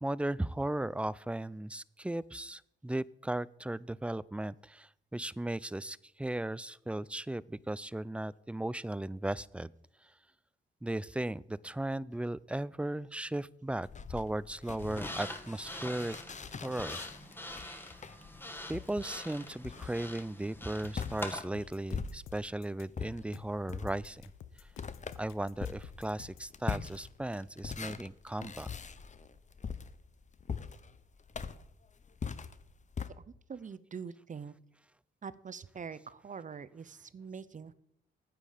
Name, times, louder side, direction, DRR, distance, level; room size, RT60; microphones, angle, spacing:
voice 1, 0.0-9.7 10.8-16.2 16.6-17.0 17.4-17.9 18.7-24.3 25.2-28.7, right 1 dB, 5° right, 21 dB, 0.3 m, -36 dB
sound 1, 13.8-22.6 22.9-33.1, left 6 dB, 35° left, 0.8 m, -42 dB
sound 2, 14.8-21.4, left 1 dB, 10° left, 1.4 m, -44 dB
sound 3, 20.8-26.5, left 10 dB, 90° left, 0.7 m, -52 dB
voice 2, 33.5-34.5 35.2-37.7, right 6 dB, 40° right, 16 dB, 0.7 m, -44 dB
9.2 x 8.4 x 5.0 m, 0.73 s
supercardioid pair, 60°, 21 cm